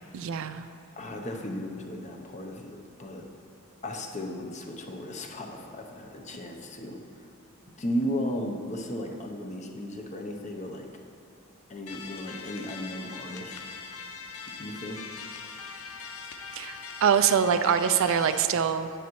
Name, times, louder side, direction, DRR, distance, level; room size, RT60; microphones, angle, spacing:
voice 1, 0.1-0.7 16.6-18.9, right 7 dB, 65° right, 10 dB, 0.4 m, -24 dB
voice 2, 1.0-3.2 3.8-7.0 7.8-10.9 11.7-13.7 14.6-15.0, equal, 35° left, 2 dB, 0.7 m, -35 dB
sound 1, 11.9-18.4, left 5 dB, 80° left, 0.5 m, -41 dB
9.8 x 8.2 x 3.1 m, 2.6 s
head